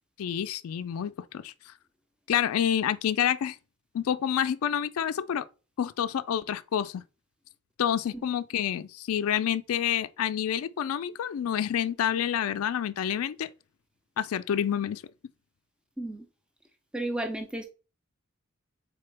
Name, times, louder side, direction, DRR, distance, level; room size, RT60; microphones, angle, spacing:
voice 1, 0.2-1.5 2.3-3.6 3.9-5.4 5.8-7.0 7.8-13.5 14.2-15.0, left 9 dB, 80° left, 0.4 m, -28 dB
voice 2, 16.9-17.6, right 1 dB, 5° right, 0.4 m, -33 dB
4.1 x 3.8 x 3.3 m
head